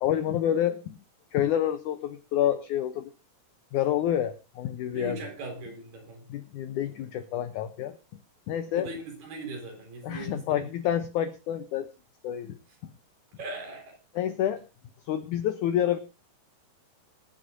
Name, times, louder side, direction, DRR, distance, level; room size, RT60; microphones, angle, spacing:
voice 1, 0.0-1.0 1.3-3.1 3.7-5.2 6.3-8.0 8.5-8.9 10.0-11.9 12.2-12.6 14.2-14.6 15.1-16.0, left 10 dB, 80° left, 11 dB, 1.8 m, -28 dB
voice 2, 4.9-6.3 8.7-10.7 13.4-14.0, right 2 dB, 60° right, 2 dB, 6.0 m, -39 dB
24.0 x 10.5 x 2.5 m, 0.30 s
omnidirectional pair, 4.4 m